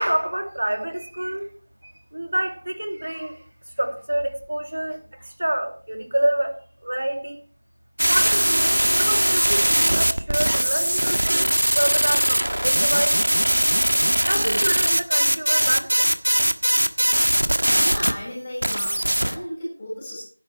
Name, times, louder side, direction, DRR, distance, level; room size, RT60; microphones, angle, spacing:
voice 1, 0.0-1.5 1.8-7.4 8.0-13.2 14.0-16.1 17.0-17.2, right 1 dB, 55° right, 2.3 m, -28 dB
sound 1, 8.0-18.1 18.6-19.4, right 1 dB, 80° right, 1.5 m, -20 dB
voice 2, 17.7-20.2, equal, 15° left, 5.9 m, -34 dB
16.5 x 10.5 x 4.4 m
figure-of-eight pair, 175°, 0 cm